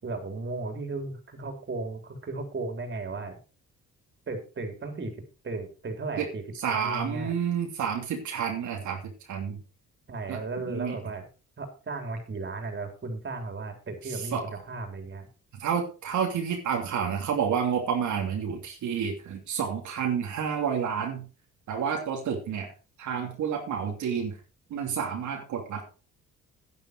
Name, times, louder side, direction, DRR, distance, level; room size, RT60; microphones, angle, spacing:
voice 1, 0.0-3.4 4.3-5.1 5.4-7.3 10.1-11.2 11.6-15.3, right 3 dB, 40° right, 5 dB, 4.0 m, -35 dB
voice 2, 6.6-9.6 10.3-10.4 10.7-11.0 14.1-14.4 15.5-21.3 21.7-22.7 23.0-24.4 24.7-25.8, right 7 dB, 75° right, 1 dB, 2.9 m, -30 dB
10.5 x 10.5 x 4.7 m, 0.33 s
cardioid pair, 90°, 30 cm